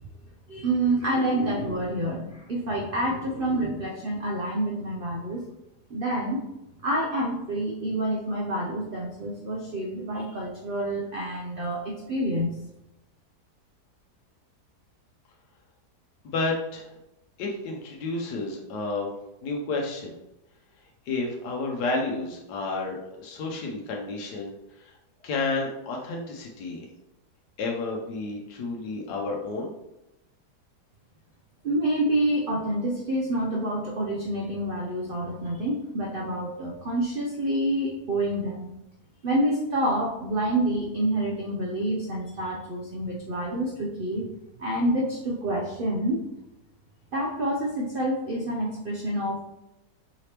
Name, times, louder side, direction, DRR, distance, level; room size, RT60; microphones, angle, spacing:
voice 1, 0.5-5.5 5.9-6.4 6.8-12.5 31.6-38.7 39.2-44.3 44.6-46.2 47.1-49.4, right 1 dB, 80° right, -1 dB, 0.4 m, -27 dB
voice 2, 16.2-16.9 17.4-19.1 19.4-20.1 21.1-25.0 25.2-26.9 27.6-29.7, left 3 dB, 80° left, -1 dB, 1.3 m, -31 dB
4.9 x 2.9 x 3.3 m, 0.91 s
omnidirectional pair, 1.8 m